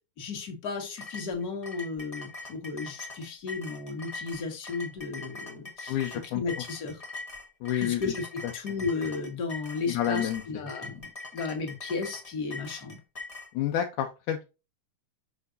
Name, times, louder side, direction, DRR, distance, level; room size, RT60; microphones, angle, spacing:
voice 1, 0.2-7.0 7.8-13.0, left 4 dB, 35° left, 3 dB, 1.8 m, -34 dB
sound 1, 1.0-13.5, left 3 dB, 55° left, 0.4 m, -42 dB
voice 2, 5.9-6.4 7.6-8.0 9.9-10.4 13.5-14.5, left 11 dB, 85° left, 4 dB, 2.3 m, -29 dB
6.4 x 5.9 x 2.6 m, 0.28 s
omnidirectional pair, 3.5 m